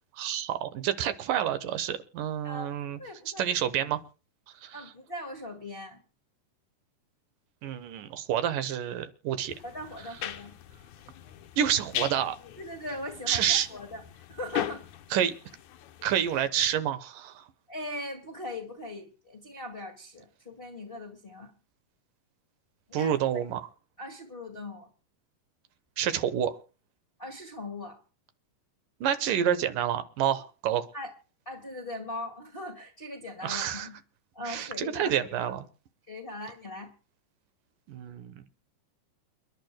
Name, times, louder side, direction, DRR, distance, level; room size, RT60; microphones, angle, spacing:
voice 1, 0.1-3.0 3.3-4.0 4.6-4.9 7.6-9.5 11.6-12.4 13.3-13.7 15.1-15.3 16.0-17.5 22.9-23.7 26.0-26.6 29.0-30.9 33.4-33.9 34.4-35.7 37.9-38.4, right 9 dB, 80° right, 2.7 m, -28 dB
voice 2, 2.4-2.7 3.0-3.5 4.7-6.0 9.6-10.5 12.6-14.0 14.3-14.8 17.7-21.5 22.9-23.1 24.0-24.9 27.2-28.0 30.9-31.1 31.4-34.0 34.3-35.5 36.1-36.9, left 1 dB, 25° left, 1.5 m, -40 dB
sound 1, 9.5-16.5, left 12 dB, 70° left, 2.1 m, -39 dB
29.0 x 11.0 x 2.2 m
omnidirectional pair, 3.9 m